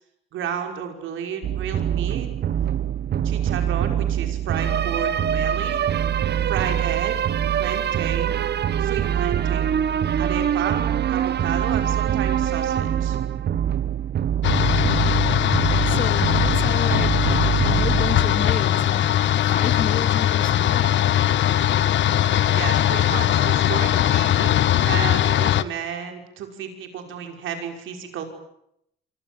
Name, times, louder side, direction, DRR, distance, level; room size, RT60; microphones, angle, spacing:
voice 1, 0.3-2.3 3.2-5.8 6.5-7.2 7.6-8.4 8.8-9.7 10.2-13.2 22.5-28.2, right 8 dB, 80° right, 5.8 m, -32 dB
sound 1, 1.4-19.0, right 10 dB, 60° right, 1.4 m, -24 dB
sound 2, 14.4-25.6, left 11 dB, 70° left, 1.2 m, -20 dB
voice 2, 15.8-19.2 19.5-21.2, left 6 dB, 45° left, 2.6 m, -32 dB
27.0 x 26.0 x 7.9 m
cardioid pair, 90°, 20 cm